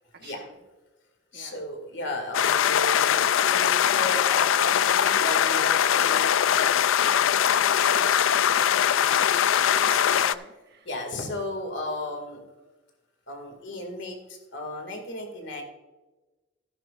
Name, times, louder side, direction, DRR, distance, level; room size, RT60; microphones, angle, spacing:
voice 1, 1.3-6.7 10.8-12.4 13.3-15.6, left 1 dB, 65° left, 3 dB, 2.2 m, -35 dB
sound 1, 2.3-10.3, left 9 dB, 85° left, 0.4 m, -21 dB
voice 2, 7.4-10.9, right 3 dB, 55° right, 4 dB, 1.3 m, -44 dB
14.0 x 11.0 x 2.5 m, 1.2 s
head